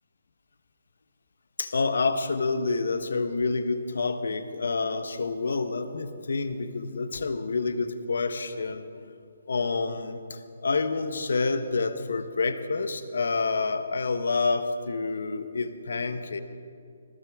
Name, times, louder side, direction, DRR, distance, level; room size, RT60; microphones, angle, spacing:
voice 1, 1.6-8.8 9.5-16.4, left 4 dB, 75° left, 10 dB, 1.1 m, -28 dB
20.5 x 15.0 x 3.6 m, 2.5 s
hypercardioid pair, 165°, 0 cm